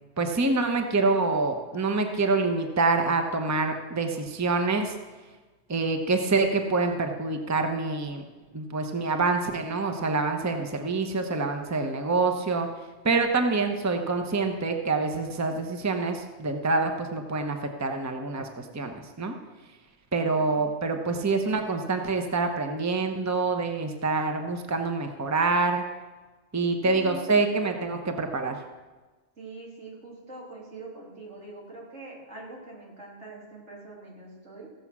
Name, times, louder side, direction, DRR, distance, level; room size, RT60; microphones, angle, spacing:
voice 1, 0.2-4.9 5.7-8.2 8.5-12.7 13.0-19.3 20.1-25.8 26.5-28.6, right 3 dB, 15° right, 5 dB, 0.8 m, -26 dB
voice 2, 26.8-27.3 29.4-34.7, right 3 dB, 85° right, -4 dB, 3.3 m, -44 dB
15.5 x 7.1 x 6.1 m, 1.3 s
omnidirectional pair, 1.2 m